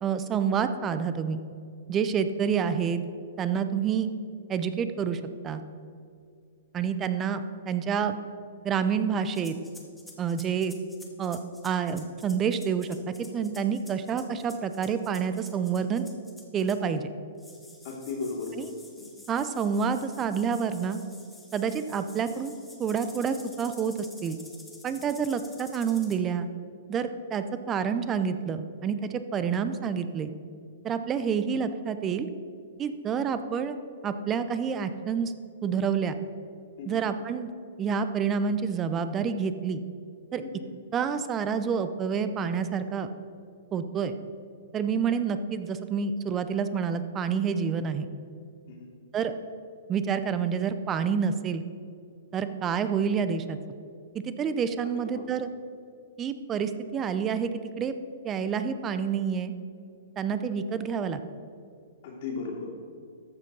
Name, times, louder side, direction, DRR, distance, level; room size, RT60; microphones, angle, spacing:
voice 1, 0.0-1.4 1.9-3.0 3.4-4.1 4.5-5.6 6.7-8.2 8.6-9.5 10.2-10.7 11.2-11.4 11.6-13.0 13.3-16.1 16.5-17.1 18.6-18.7 19.3-21.0 21.5-24.4 24.8-26.5 26.9-30.3 30.8-32.3 32.8-33.8 34.0-35.3 35.6-36.2 36.9-37.5 37.8-39.8 40.3-40.4 40.9-43.1 43.7-44.1 44.7-48.1 49.1-49.3 49.9-51.6 52.3-53.6 54.1-55.5 56.2-57.5 57.8-57.9 58.2-59.5 60.2-61.2, right 6 dB, 25° right, 10 dB, 0.6 m, -28 dB
sound 1, 9.3-17.0 17.4-26.2, left 2 dB, 5° left, 1.3 m, -50 dB
voice 2, 17.8-18.7 19.0-19.1 36.8-36.9 40.4-40.7 48.7-48.9 55.1-55.2 62.0-62.7, left 4 dB, 55° left, -4 dB, 2.5 m, -35 dB
14.0 x 5.2 x 5.5 m, 2.4 s
hypercardioid pair, 125°, 0 cm